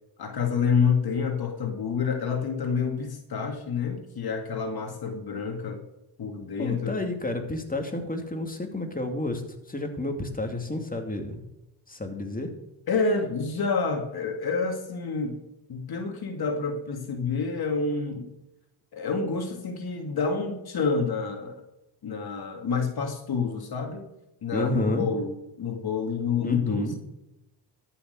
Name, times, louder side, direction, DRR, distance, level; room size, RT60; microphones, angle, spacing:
voice 1, 0.2-5.8 6.2-7.0 12.9-15.4 15.7-18.3 18.9-21.6 22.0-24.1 24.4-26.9, left 5 dB, 65° left, 4 dB, 2.2 m, -28 dB
voice 2, 6.6-9.4 9.7-11.4 11.9-12.5 24.5-25.1 26.4-27.0, left 1 dB, 20° left, 5 dB, 2.6 m, -30 dB
13.0 x 7.0 x 6.5 m, 0.92 s
cardioid pair, 65°, 40 cm